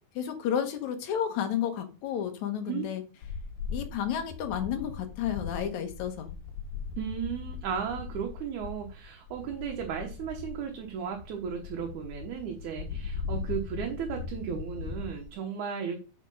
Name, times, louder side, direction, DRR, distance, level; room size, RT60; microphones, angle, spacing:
voice 1, 0.2-3.0 3.7-6.3, left 9 dB, 75° left, 6 dB, 2.5 m, -31 dB
sound 1, 3.2-15.3, left 5 dB, 90° left, 2.6 m, -39 dB
voice 2, 7.0-16.0, right 7 dB, 75° right, 3 dB, 2.5 m, -35 dB
7.4 x 5.1 x 5.4 m, 0.34 s
omnidirectional pair, 3.5 m